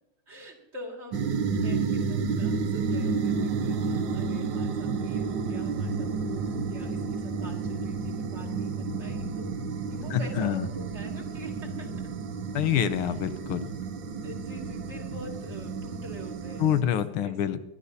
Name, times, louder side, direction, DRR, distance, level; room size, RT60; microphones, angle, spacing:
voice 1, 0.3-9.5 9.9-12.1 13.0-13.1 14.2-16.9 17.2-17.4, right 2 dB, 35° right, 1 dB, 2.3 m, -45 dB
sound 1, 1.1-16.8, right 4 dB, 65° right, 1.5 m, -31 dB
voice 2, 10.1-10.7 12.5-13.7 16.6-17.6, left 10 dB, 85° left, 12 dB, 1.6 m, -26 dB
23.0 x 12.0 x 2.7 m, 0.94 s
omnidirectional pair, 2.3 m